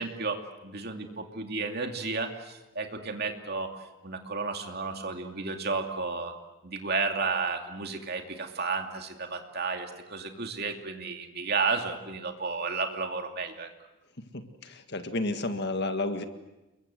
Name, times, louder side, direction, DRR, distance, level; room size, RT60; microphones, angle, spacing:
voice 1, 0.0-3.7 4.0-6.3 6.6-13.7, right 4 dB, 45° right, 4 dB, 2.6 m, -32 dB
voice 2, 14.3-16.2, left 2 dB, 50° left, 7 dB, 1.8 m, -31 dB
28.5 x 22.5 x 7.8 m, 1.0 s
head